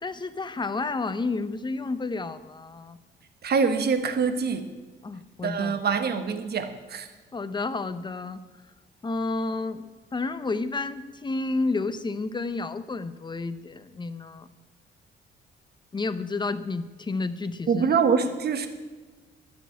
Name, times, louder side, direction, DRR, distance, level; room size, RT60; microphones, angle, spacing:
voice 1, 0.0-3.0 5.0-5.8 7.3-8.4 9.0-14.5 15.9-17.9, left 3 dB, 20° left, 11 dB, 0.9 m, -31 dB
voice 2, 3.4-4.7 5.4-7.1 17.7-18.7, right 5 dB, 55° right, 9 dB, 1.3 m, -24 dB
12.0 x 6.5 x 9.3 m, 1.3 s
cardioid pair, 90°, 20 cm